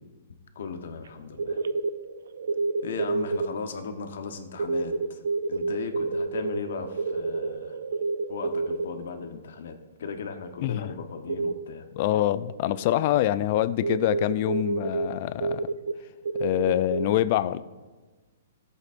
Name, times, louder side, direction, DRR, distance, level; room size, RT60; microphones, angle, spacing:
voice 1, 0.5-1.6 2.8-5.2 5.5-7.8 8.3-11.8, left 5 dB, 65° left, 7 dB, 0.9 m, -37 dB
sound 1, 1.1-1.2 1.4-3.5 4.6-9.3 11.3-11.6 12.5-15.1 15.4-15.9 16.2-17.1, right 3 dB, 90° right, 0.5 m, -29 dB
voice 2, 11.9-15.7 16.4-17.6, left 13 dB, 35° left, 16 dB, 0.3 m, -25 dB
15.0 x 8.2 x 2.5 m, 1.3 s
hypercardioid pair, 170°, 0 cm